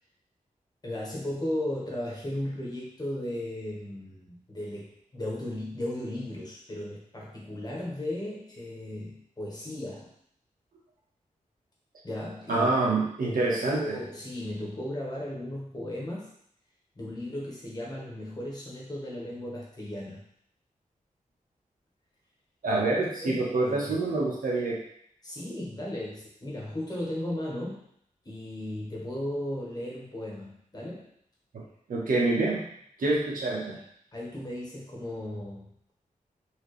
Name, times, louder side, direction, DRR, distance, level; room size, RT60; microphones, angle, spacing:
voice 1, 0.8-10.1 12.0-12.7 13.2-16.3 16.9-20.2 22.6-22.8 23.2-23.8 25.2-27.9 28.2-31.1 34.1-35.9, left 1 dB, 30° left, -4 dB, 1.4 m, -36 dB
voice 2, 12.5-13.9 22.6-24.8 31.5-31.6 31.9-32.6 33.0-33.8, right 2 dB, 80° right, -4 dB, 1.2 m, -26 dB
4.7 x 2.9 x 3.2 m, 0.68 s
wide cardioid pair, 115°, 14 cm